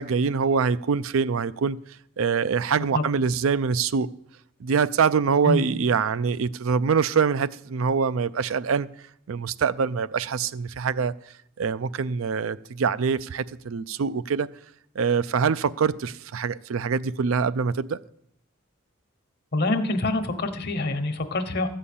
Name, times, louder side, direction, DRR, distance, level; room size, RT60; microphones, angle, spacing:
voice 1, 0.0-1.8 2.2-4.1 4.6-8.9 9.3-11.1 11.6-14.5 15.0-18.0, right 5 dB, 75° right, 0.4 m, -24 dB
voice 2, 19.5-21.7, left 2 dB, 55° left, 1.1 m, -25 dB
13.5 x 5.6 x 8.5 m
head